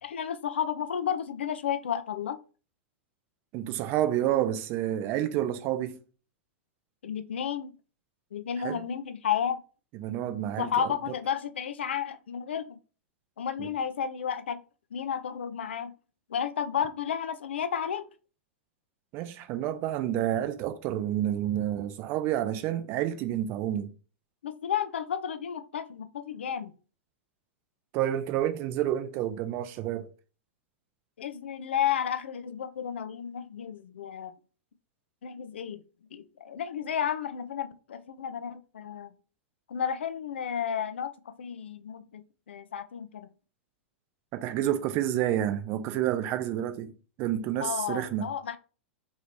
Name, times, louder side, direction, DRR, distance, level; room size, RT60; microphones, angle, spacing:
voice 1, 0.0-2.4 7.0-7.7 8.3-9.6 10.6-12.8 13.4-14.6 14.9-15.9 16.3-18.0 24.4-26.7 31.2-34.3 35.2-35.8 36.1-39.1 39.7-43.3 47.6-48.6, left 8 dB, 65° left, 0.3 m, -32 dB
voice 2, 3.5-6.0 8.6-8.8 10.0-10.9 13.6-13.7 19.1-23.9 27.9-30.1 44.3-46.9 47.2-48.3, right 12 dB, 35° right, 0.4 m, -29 dB
3.0 x 2.7 x 3.0 m
figure-of-eight pair, 95°, 7 cm